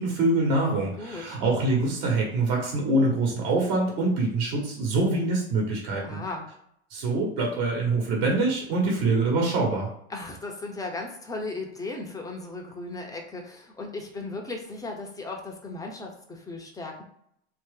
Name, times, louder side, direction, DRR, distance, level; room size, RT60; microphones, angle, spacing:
voice 1, 0.0-6.2 6.9-9.9, right 2 dB, 50° right, -2 dB, 1.4 m, -25 dB
voice 2, 1.0-1.4 6.0-6.5 10.1-17.0, left 2 dB, 10° left, 1 dB, 0.7 m, -36 dB
2.8 x 2.7 x 3.7 m, 0.71 s
hypercardioid pair, 95°, 35 cm